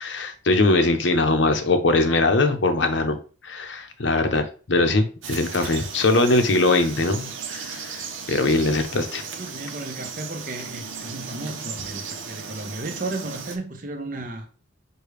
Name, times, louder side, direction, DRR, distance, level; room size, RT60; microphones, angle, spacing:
voice 1, 0.0-3.2 3.4-9.2, left 2 dB, 65° left, 0.7 m, -21 dB
Frog, 5.2-13.6, right 6 dB, 80° right, 0.7 m, -36 dB
voice 2, 9.3-14.5, right 2 dB, 40° right, 0.8 m, -34 dB
6.6 x 2.3 x 3.2 m
head